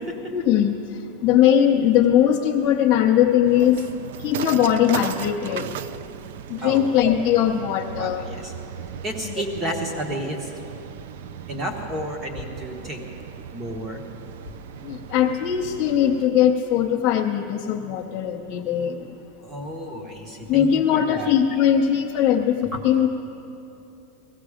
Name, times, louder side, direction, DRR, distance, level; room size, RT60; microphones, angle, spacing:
voice 1, 0.3-0.8 1.2-3.8 4.2-5.7 6.5-8.3 9.2-9.4 14.8-19.1 20.5-23.1, left 10 dB, 25° left, -3 dB, 0.6 m, -20 dB
sound 1, 3.4-16.3, right 9 dB, 60° right, 0.3 m, -37 dB
voice 2, 8.0-8.5 9.0-10.5 11.5-13.0 13.5-14.0 19.4-21.3 22.7-22.8, right 1 dB, 15° right, 3 dB, 1.2 m, -31 dB
18.0 x 15.0 x 5.0 m, 2.9 s
supercardioid pair, 180°, 0 cm